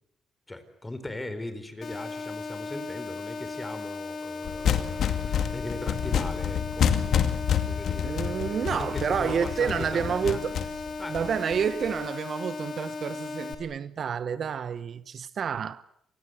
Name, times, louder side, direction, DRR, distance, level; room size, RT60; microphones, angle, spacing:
voice 1, 0.5-6.9 7.5-10.4 11.0-11.2, left 2 dB, 15° left, 4.3 m, -39 dB
sound 1, 1.8-13.5, left 4 dB, 50° left, 4.4 m, -36 dB
sound 2, 4.4-11.9, left 8 dB, 65° left, 2.3 m, -28 dB
voice 2, 8.0-10.5 11.1-15.8, right 7 dB, 55° right, 1.0 m, -29 dB
27.5 x 20.0 x 8.1 m
cardioid pair, 90°, 0 cm